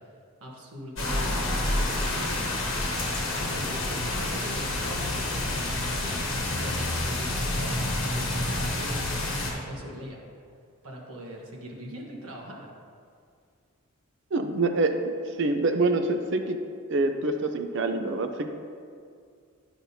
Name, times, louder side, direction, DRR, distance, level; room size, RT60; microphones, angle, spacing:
voice 1, 0.4-2.4 3.5-10.2 10.8-12.7, equal, 85° right, -1 dB, 1.3 m, -41 dB
sound 1, 1.0-9.5, left 1 dB, 60° left, 1.3 m, -29 dB
sound 2, 3.3-9.5, left 2 dB, 80° left, 0.7 m, -41 dB
voice 2, 14.3-15.0 15.4-16.6 16.9-18.5, right 2 dB, 55° right, 6 dB, 0.5 m, -25 dB
10.0 x 6.0 x 2.7 m, 2.3 s
head